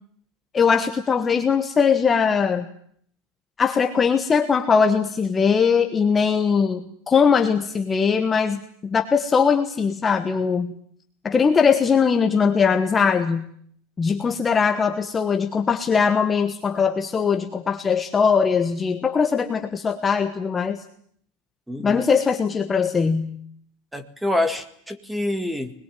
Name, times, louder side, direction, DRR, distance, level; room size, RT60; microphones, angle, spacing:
voice 1, 0.5-2.7 3.6-10.7 11.2-13.5 14.0-20.8 21.8-23.4, left 6 dB, 15° left, 6 dB, 1.3 m, -20 dB
voice 2, 21.7-22.0 23.9-25.7, left 1 dB, 5° right, 10 dB, 1.9 m, -26 dB
25.0 x 21.0 x 9.1 m, 0.63 s
supercardioid pair, 170°, 0 cm